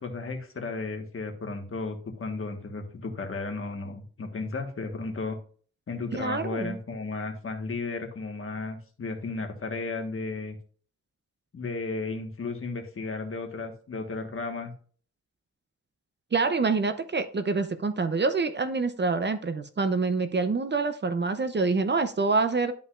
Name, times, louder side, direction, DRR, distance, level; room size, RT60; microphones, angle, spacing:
voice 1, 0.0-5.4 5.9-10.6 11.5-14.7, left 3 dB, 45° left, 4 dB, 1.5 m, -34 dB
voice 2, 6.1-6.8 16.3-22.7, right 4 dB, 35° right, 9 dB, 0.7 m, -26 dB
11.5 x 5.4 x 2.5 m, 0.43 s
wide cardioid pair, 115°, 29 cm